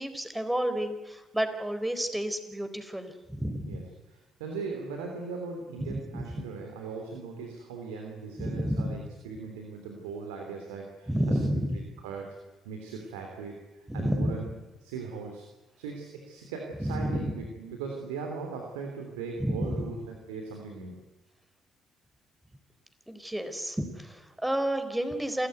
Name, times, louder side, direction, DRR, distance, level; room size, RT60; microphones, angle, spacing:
voice 1, 0.0-3.8 5.8-6.2 8.4-9.0 11.1-11.8 13.9-14.4 16.8-17.3 19.4-19.9 23.1-25.5, equal, 10° right, 9 dB, 4.3 m, -30 dB
voice 2, 4.1-9.0 9.2-11.6 12.0-12.3 12.6-14.5 14.8-15.5 15.8-21.0, right 4 dB, 85° right, 2 dB, 3.3 m, -39 dB
28.5 x 15.0 x 9.5 m, 1.1 s
hypercardioid pair, 50°, 0 cm